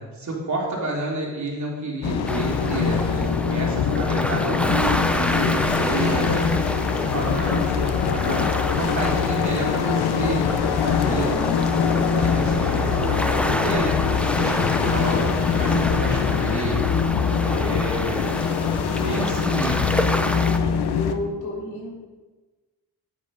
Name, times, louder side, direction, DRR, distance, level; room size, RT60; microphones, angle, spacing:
voice 1, 0.0-6.5 7.0-8.5 8.8-10.5 10.8-11.4 12.1-16.8 17.5-18.3 18.6-19.9, right 2 dB, 50° right, -3 dB, 3.0 m, -30 dB
sound 1, 2.0-21.1, left 7 dB, 90° left, 0.8 m, -23 dB
sound 2, 2.3-20.6, equal, 5° left, 0.6 m, -28 dB
voice 2, 10.9-11.8 15.1-15.5 21.0-21.9, left 1 dB, 50° left, -4 dB, 3.5 m, -32 dB
10.0 x 6.8 x 5.3 m, 1.3 s
cardioid pair, 100°, 38 cm